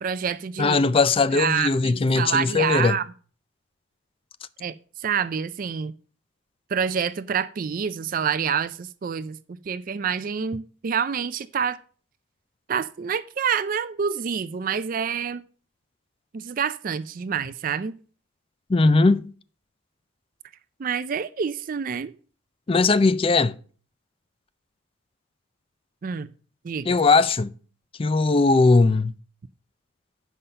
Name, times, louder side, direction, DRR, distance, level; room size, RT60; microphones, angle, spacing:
voice 1, 0.0-0.8 1.3-3.0 4.6-5.9 6.7-11.8 12.7-15.4 16.3-17.9 20.8-22.1 26.0-26.3 26.6-27.0, right 7 dB, 40° right, 0.4 m, -27 dB
voice 2, 0.6-3.0 18.7-19.3 22.7-23.6 26.9-27.5 28.0-29.1, left 3 dB, 25° left, 0.4 m, -19 dB
7.4 x 5.5 x 6.6 m
head